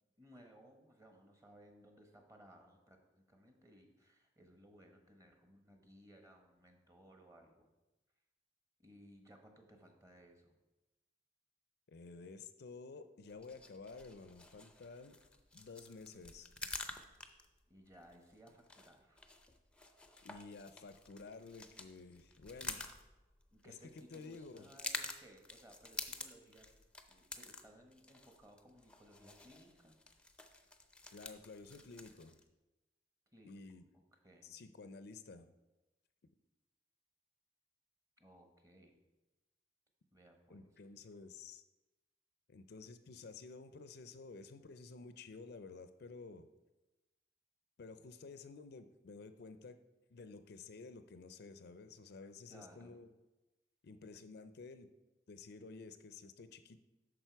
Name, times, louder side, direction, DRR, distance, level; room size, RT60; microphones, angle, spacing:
voice 1, 0.2-7.7 8.8-10.6 17.7-19.2 23.5-26.7 27.1-30.0 33.3-33.6 34.2-34.5 38.2-39.0 40.1-40.7 52.5-53.0, right 1 dB, 20° right, 3 dB, 1.2 m, -61 dB
voice 2, 11.9-15.2 15.5-16.5 20.2-22.9 23.6-23.8 24.1-24.7 31.1-32.4 33.4-33.8 34.4-35.5 40.5-41.6 42.5-46.5 47.8-49.8 50.1-53.1 53.8-54.9 55.3-56.8, left 4 dB, 60° left, 11 dB, 0.5 m, -52 dB
sound 1, 13.3-32.4, left 3 dB, 5° left, 0.6 m, -50 dB
9.0 x 6.3 x 4.6 m, 1.1 s
head